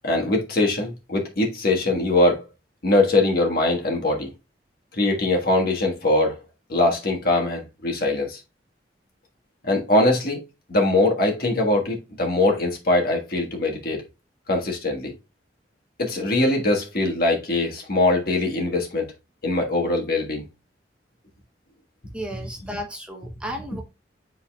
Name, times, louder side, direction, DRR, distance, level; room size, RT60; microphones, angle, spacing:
voice 1, 0.0-2.4 2.8-4.3 5.0-6.3 6.7-8.4 9.7-10.4 10.7-14.0 14.5-15.1 16.0-19.1 19.4-20.5, left 2 dB, 55° left, 1.5 m, -22 dB
voice 2, 22.1-23.8, equal, 5° right, 0.8 m, -34 dB
10.0 x 4.0 x 2.3 m
head